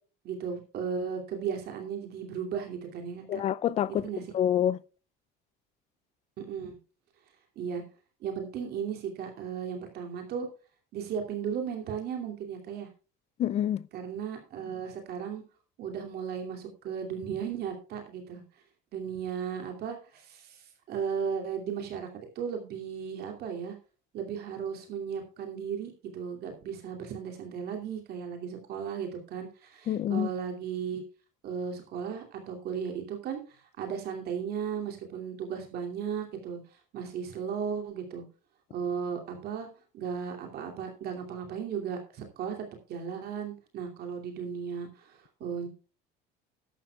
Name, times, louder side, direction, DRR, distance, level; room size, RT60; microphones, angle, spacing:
voice 1, 0.2-3.4 4.0-4.2 6.4-6.8 7.6-7.8 8.2-10.5 10.9-12.9 13.9-15.4 15.8-18.4 18.9-22.1 22.3-23.7 24.1-31.0 31.4-38.2 38.7-39.7 39.9-45.7, right 7 dB, 50° right, 2.7 m, -35 dB
voice 2, 3.3-4.8 13.4-13.9 29.9-30.3, left 10 dB, 30° left, 0.4 m, -27 dB
15.0 x 12.0 x 2.3 m
cardioid pair, 165°, 21 cm